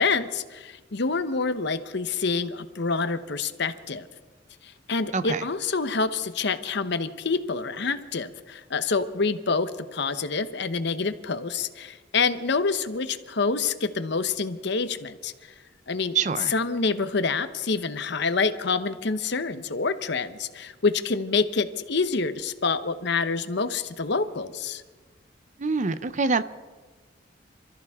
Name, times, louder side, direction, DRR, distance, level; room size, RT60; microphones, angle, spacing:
voice 1, 0.0-4.1 4.6-15.3 15.9-16.2 16.5-24.8, left 4 dB, 60° left, 11 dB, 0.9 m, -27 dB
voice 2, 16.1-16.5 25.6-26.4, right 4 dB, 40° right, 13 dB, 0.6 m, -25 dB
28.0 x 14.0 x 3.6 m, 1.3 s
head